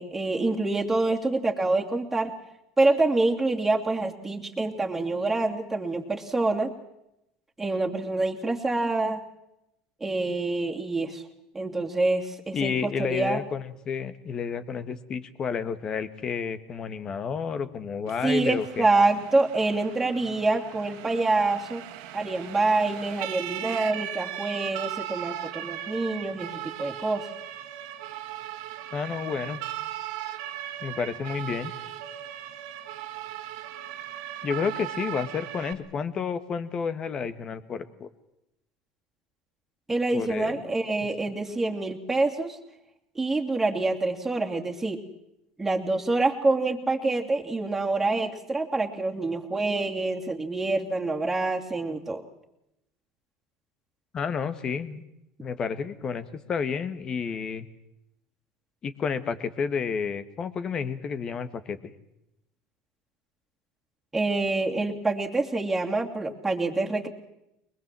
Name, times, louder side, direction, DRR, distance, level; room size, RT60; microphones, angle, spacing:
voice 1, 0.0-2.3 2.8-6.7 7.6-9.2 10.0-11.2 11.5-13.4 18.2-21.8 22.1-27.3 39.9-42.6 43.1-45.0 45.6-52.2 64.1-67.1, right 2 dB, 10° right, -1 dB, 2.9 m, -26 dB
voice 2, 12.5-18.9 28.9-29.6 30.8-31.7 34.4-38.1 40.1-40.6 54.1-55.0 55.4-57.7 58.8-61.9, left 6 dB, 35° left, 13 dB, 1.7 m, -30 dB
Siren, 18.1-35.7, right 12 dB, 75° right, 1.9 m, -38 dB
23.0 x 20.5 x 7.7 m, 0.85 s
supercardioid pair, 100°, 2 cm